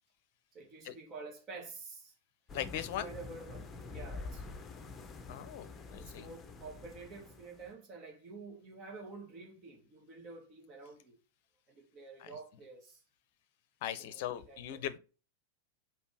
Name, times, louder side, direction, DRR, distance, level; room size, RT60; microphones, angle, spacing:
voice 1, 0.5-2.1 2.9-4.6 6.0-11.2 11.7-13.0 13.9-14.8, right 4 dB, 35° right, 1.9 m, -49 dB
voice 2, 2.5-3.1 5.3-6.3 12.2-12.3 13.8-15.0, left 11 dB, 50° left, 0.7 m, -39 dB
sound 1, 2.5-7.7, left 4 dB, 20° left, 1.0 m, -47 dB
5.2 x 4.6 x 4.8 m
figure-of-eight pair, 90°, 0 cm